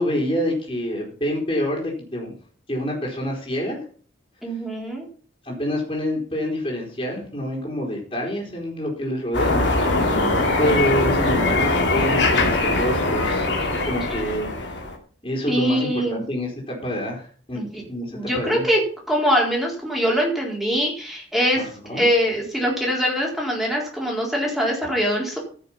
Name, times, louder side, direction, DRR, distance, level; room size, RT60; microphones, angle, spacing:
voice 1, 0.0-2.3 2.7-3.8 5.4-10.0 10.6-13.5 13.8-14.8 15.2-18.7 21.5-22.0, equal, 25° left, -6 dB, 3.8 m, -27 dB
voice 2, 4.4-5.0 9.9-10.5 15.5-16.2 17.5-17.8 18.1-25.4, equal, ahead, -2 dB, 4.0 m, -23 dB
sound 1, 9.3-15.0, left 2 dB, 65° left, 2.6 m, -21 dB
15.0 x 6.8 x 5.7 m, 0.43 s
head